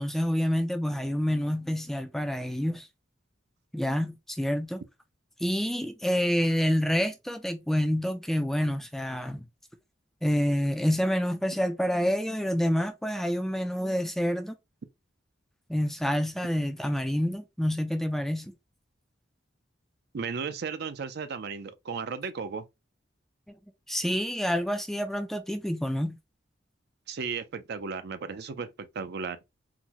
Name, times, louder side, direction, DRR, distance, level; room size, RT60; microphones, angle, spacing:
voice 1, 0.0-2.9 3.7-4.8 5.4-9.5 10.2-14.5 15.7-18.5 23.9-26.2, equal, ahead, 0.3 m, -28 dB
voice 2, 20.1-22.6 27.1-29.4, right 5 dB, 60° right, 0.4 m, -35 dB
3.8 x 2.1 x 2.9 m
head